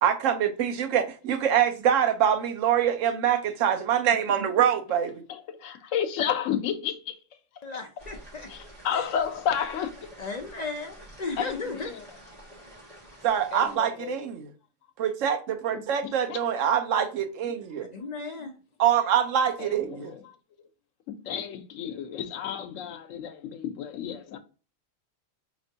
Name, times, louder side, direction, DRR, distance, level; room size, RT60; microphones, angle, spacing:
voice 1, 0.0-5.2 13.2-14.5 15.0-17.9 18.8-20.1, right 9 dB, 85° right, 1.0 m, -25 dB
voice 2, 5.3-6.9 8.5-10.1 11.4-12.0 13.5-14.2 16.0-16.4 19.6-20.3 21.1-24.4, left 8 dB, 90° left, 1.0 m, -32 dB
voice 3, 7.6-8.5 8.9-9.1 10.2-11.9 17.9-18.6, left 3 dB, 55° left, 0.4 m, -35 dB
sound 1, 8.0-13.8, right 1 dB, 35° right, 1.7 m, -48 dB
4.2 x 3.0 x 2.7 m
omnidirectional pair, 1.3 m